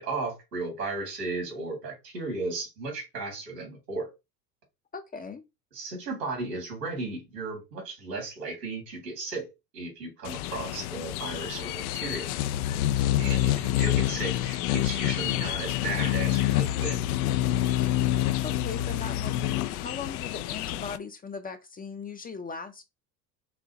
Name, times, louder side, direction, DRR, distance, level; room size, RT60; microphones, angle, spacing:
voice 1, 0.0-4.1 5.7-9.5 9.7-12.3 13.2-17.0, right 3 dB, 85° right, 2.9 m, -35 dB
voice 2, 4.9-5.4 18.4-22.8, left 5 dB, 20° left, 0.6 m, -38 dB
sound 1, 10.2-21.0, left 13 dB, 65° left, 0.5 m, -27 dB
6.1 x 2.8 x 2.9 m
hypercardioid pair, 75°, 48 cm